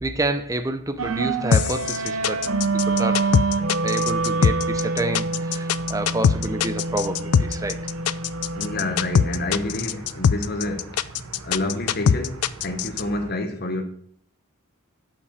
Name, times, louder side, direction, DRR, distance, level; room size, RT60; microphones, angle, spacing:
voice 1, 0.0-2.4 2.9-3.2 3.8-7.8, right 2 dB, 15° right, 0.6 m, -28 dB
sound 1, 1.0-13.3, right 3 dB, 75° right, 0.9 m, -28 dB
sound 2, 1.5-13.0, left 7 dB, 90° left, 0.4 m, -21 dB
voice 2, 8.5-11.0 11.4-13.8, left 2 dB, 45° left, 1.2 m, -28 dB
8.4 x 5.2 x 6.7 m
head